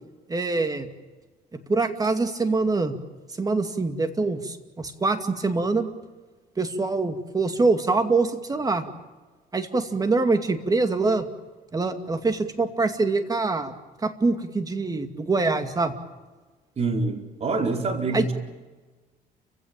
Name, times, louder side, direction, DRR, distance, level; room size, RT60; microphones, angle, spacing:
voice 1, 0.3-0.9 1.7-3.0 3.4-5.9 6.6-8.9 9.5-11.3 11.7-13.7 14.0-15.9 18.1-18.3, right 3 dB, 20° right, 7 dB, 2.4 m, -24 dB
voice 2, 16.8-18.3, right 3 dB, 40° right, 3 dB, 4.4 m, -26 dB
30.0 x 16.5 x 9.0 m, 1.3 s
cardioid pair, 110°, 17 cm